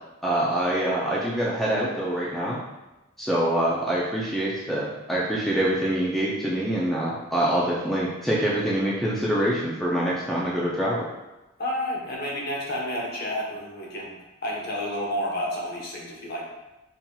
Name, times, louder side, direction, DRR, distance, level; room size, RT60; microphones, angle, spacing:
voice 1, 0.2-2.6 3.2-11.1, right 1 dB, ahead, -6 dB, 0.4 m, -25 dB
voice 2, 11.6-16.4, left 1 dB, 50° left, -3 dB, 0.9 m, -30 dB
5.5 x 2.8 x 2.2 m, 1.0 s
head